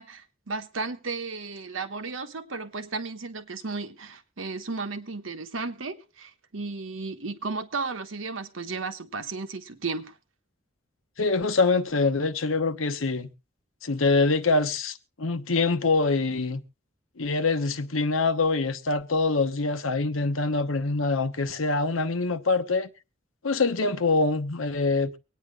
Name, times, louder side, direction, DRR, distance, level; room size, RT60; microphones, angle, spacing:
voice 1, 0.0-10.2, right 4 dB, 80° right, 1.2 m, -34 dB
voice 2, 11.2-13.3 13.8-16.6 17.2-22.9 23.4-25.2, left 3 dB, 85° left, 1.0 m, -25 dB
24.0 x 9.5 x 2.3 m
head